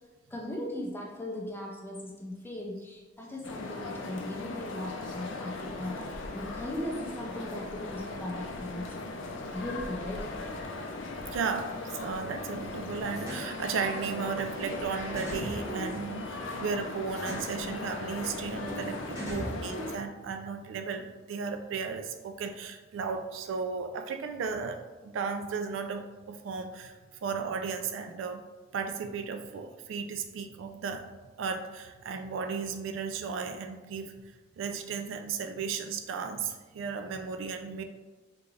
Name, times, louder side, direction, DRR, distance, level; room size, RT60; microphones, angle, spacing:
voice 1, 0.3-9.0 9.5-10.3 19.3-19.5, left 1 dB, 10° left, -1 dB, 0.5 m, -38 dB
sound 1, 3.4-20.0, left 2 dB, 75° left, 0.4 m, -38 dB
voice 2, 11.3-26.9 27.2-28.4 28.7-31.0 31.4-34.1 34.6-37.8, right 5 dB, 80° right, 6 dB, 0.3 m, -35 dB
sound 2, 13.2-13.5 14.7-14.8 15.2-16.6 17.2-17.5 18.7-18.8 19.2-20.3, right 1 dB, 15° right, 0.8 m, -39 dB
3.7 x 3.1 x 2.4 m, 1.2 s
head